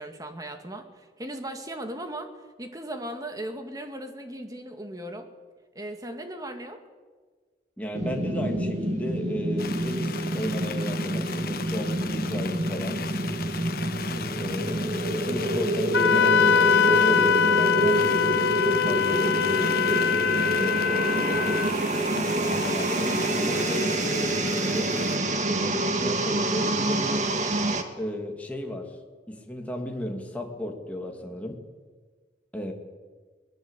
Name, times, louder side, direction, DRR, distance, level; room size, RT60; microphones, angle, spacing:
voice 1, 0.0-2.3 2.6-5.3 5.8-6.8 14.7-14.9, right 1 dB, 20° right, 6 dB, 2.2 m, -37 dB
voice 2, 7.8-13.0 14.4-14.8 15.1-20.1 20.5-21.5 22.1-24.9 25.6-27.2 28.0-28.9 29.3-31.6 32.5-32.7, left 1 dB, 10° left, 1 dB, 2.6 m, -34 dB
sound 1, 7.9-27.8, right 1 dB, 40° right, 2.0 m, -27 dB
sound 2, 9.6-25.2, left 6 dB, 55° left, 1.3 m, -38 dB
Wind instrument woodwind instrument, 15.9-21.7, left 8 dB, 80° left, 0.7 m, -23 dB
22.0 x 20.0 x 8.3 m, 1.5 s
head